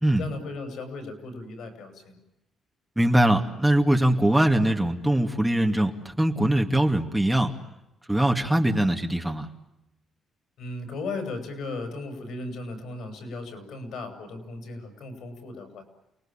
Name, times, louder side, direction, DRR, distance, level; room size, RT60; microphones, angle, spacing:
voice 1, 0.2-2.2 10.6-15.8, left 3 dB, 75° left, 6 dB, 7.3 m, -36 dB
voice 2, 3.0-7.5 8.1-9.5, right 1 dB, 10° right, 3 dB, 2.5 m, -22 dB
29.5 x 19.5 x 9.1 m, 0.92 s
cardioid pair, 90°, 0 cm